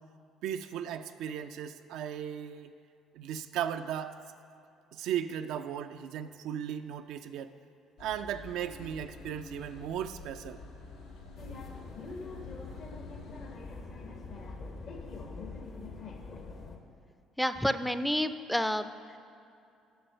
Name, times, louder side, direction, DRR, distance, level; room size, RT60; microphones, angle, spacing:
voice 1, 0.4-2.7 3.1-4.2 4.9-7.5 8.0-10.6, right 9 dB, 70° right, 8 dB, 0.4 m, -36 dB
sound 1, 8.0-13.6, left 3 dB, 75° left, 1.0 m, -49 dB
sound 2, 11.4-16.8, left 3 dB, 55° left, 1.2 m, -43 dB
voice 2, 17.4-19.2, equal, ahead, 11 dB, 0.5 m, -30 dB
7.8 x 6.0 x 6.6 m, 2.6 s
hypercardioid pair, 55°, 0 cm